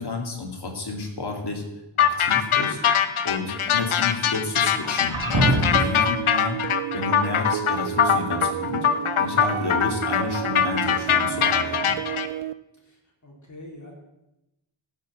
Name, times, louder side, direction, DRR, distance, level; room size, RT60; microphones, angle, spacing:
voice 1, 0.0-1.6 2.0-2.8 3.2-6.6 6.9-8.9 9.2-12.0, left 3 dB, 55° left, 2 dB, 2.6 m, -31 dB
sound 1, 2.0-12.3, left 8 dB, 85° left, 0.9 m, -22 dB
sound 2, 2.4-3.3 4.7-6.0, right 1 dB, 45° right, 2.0 m, -26 dB
sound 3, 5.7-12.5, right 13 dB, 85° right, 0.6 m, -32 dB
voice 2, 12.8-13.9, left 1 dB, 35° left, -2 dB, 3.7 m, -45 dB
14.5 x 6.0 x 7.4 m, 0.93 s
wide cardioid pair, 145°, 48 cm